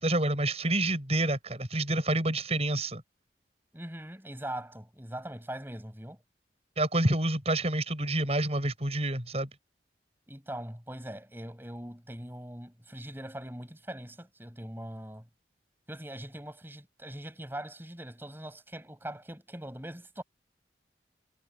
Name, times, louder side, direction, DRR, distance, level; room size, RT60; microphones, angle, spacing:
voice 1, 0.0-3.0 6.8-9.5, right 1 dB, 35° right, 6.9 m, -28 dB
voice 2, 3.7-6.2 10.3-15.3 15.9-20.2, right 1 dB, 10° right, 7.5 m, -41 dB
head